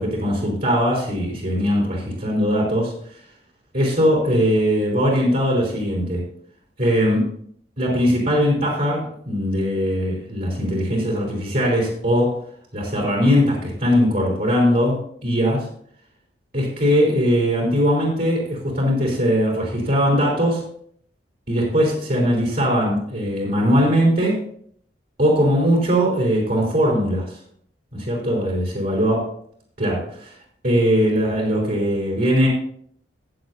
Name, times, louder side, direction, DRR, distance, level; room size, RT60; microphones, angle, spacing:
voice 1, 0.0-3.2 3.7-6.3 6.8-7.3 7.8-12.4 12.7-15.7 16.5-20.6 21.5-24.4 25.2-27.4 27.9-29.2 29.8-30.4 30.6-32.5, equal, 55° right, -3 dB, 3.6 m, -20 dB
15.5 x 8.7 x 2.7 m, 0.62 s
head